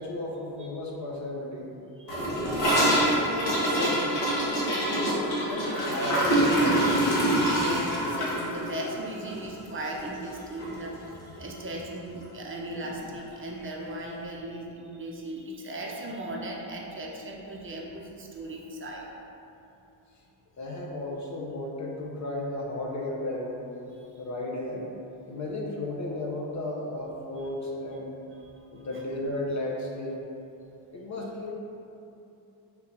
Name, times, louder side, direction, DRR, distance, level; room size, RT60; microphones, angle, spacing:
voice 1, 0.0-1.7 2.4-4.1 4.7-6.9 20.6-23.7 24.2-24.9 25.3-28.2 28.7-30.2 30.9-31.5, left 1 dB, 35° left, -2 dB, 0.8 m, -34 dB
voice 2, 2.0-2.6 7.4-11.1 11.4-19.1 23.9-24.2 27.4-27.5 28.4-29.0, right 1 dB, 25° right, -2 dB, 0.7 m, -38 dB
Gurgling / Toilet flush, 2.1-10.3 10.6-10.7 11.0-11.5 11.7-11.8 12.1-12.2 13.2-13.3, right 1 dB, 55° left, 1.3 m, -25 dB
3.7 x 2.7 x 4.6 m, 2.9 s
cardioid pair, 85°, 47 cm